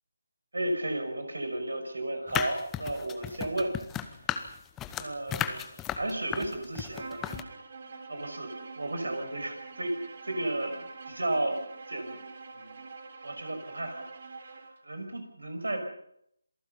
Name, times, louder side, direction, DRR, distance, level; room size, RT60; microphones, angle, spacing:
voice 1, 0.5-3.7 5.0-7.2 8.1-10.7 11.2-11.6 11.9-12.2 12.5-12.8 13.2-14.0 14.4-15.8, right 1 dB, 80° right, 6 dB, 6.1 m, -33 dB
sound 1, 2.3-7.4, left 10 dB, 10° left, 1.0 m, -34 dB
Bowed string instrument, 6.9-14.8, right 4 dB, 50° right, 3.5 m, -45 dB
27.5 x 18.5 x 5.6 m, 0.73 s
figure-of-eight pair, 155°, 0 cm